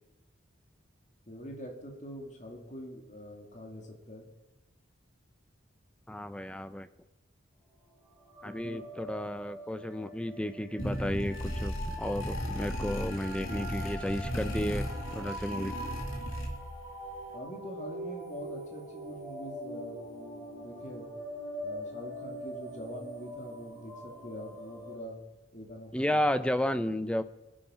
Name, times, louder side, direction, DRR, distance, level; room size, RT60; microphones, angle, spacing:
voice 1, 1.3-4.3 8.4-8.8 17.3-21.1 21.6-25.2 25.5-26.2, equal, 35° left, 1 dB, 2.4 m, -44 dB
voice 2, 6.1-6.9 8.4-14.9 15.1-15.7 25.9-27.2, left 1 dB, 5° left, 12 dB, 0.5 m, -32 dB
sound 1, 8.2-25.0, right 1 dB, 10° right, 3.1 m, -43 dB
sound 2, 10.8-16.9, equal, 85° left, 3.0 m, -36 dB
21.0 x 8.7 x 5.6 m, 1.0 s
head